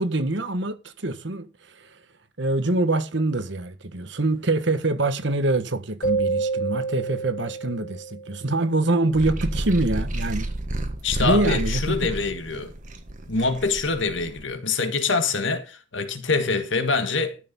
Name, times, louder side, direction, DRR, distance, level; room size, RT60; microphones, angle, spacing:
voice 1, 0.0-1.9 2.4-10.5 11.2-12.0, right 2 dB, 60° right, 1.3 m, -25 dB
sound 1, 6.0-8.7, right 4 dB, 40° left, 1.3 m, -28 dB
sound 2, 9.1-14.5, right 1 dB, 40° right, 1.6 m, -31 dB
voice 2, 11.0-12.7 13.3-17.4, left 4 dB, 65° left, 1.7 m, -25 dB
13.0 x 6.8 x 5.4 m
head